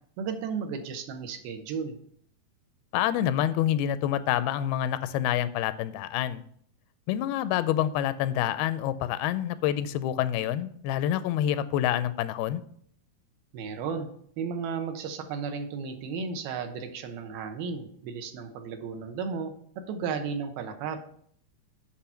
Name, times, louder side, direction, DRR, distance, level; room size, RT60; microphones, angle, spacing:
voice 1, 0.2-2.0 13.5-14.1 14.4-21.0, right 6 dB, 80° right, 6 dB, 2.8 m, -34 dB
voice 2, 2.9-6.4 7.1-12.6, left 11 dB, 90° left, 13 dB, 2.5 m, -27 dB
8.6 x 6.1 x 5.6 m, 0.64 s
omnidirectional pair, 4.3 m